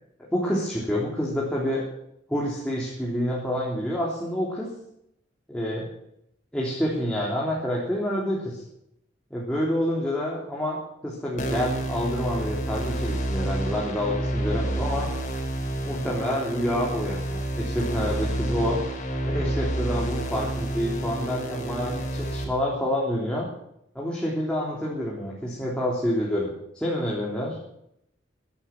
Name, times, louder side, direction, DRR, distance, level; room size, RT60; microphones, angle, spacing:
voice 1, 0.3-1.8 2.3-4.7 5.5-5.9 6.5-8.6 9.3-10.8 11.0-15.1 15.9-18.8 19.2-23.5 24.0-26.5 26.7-27.6, equal, 5° left, -5 dB, 3.5 m, -28 dB
sound 1, 11.4-22.4, right 1 dB, 45° left, 4.2 m, -29 dB
16.0 x 12.0 x 6.1 m, 0.76 s
head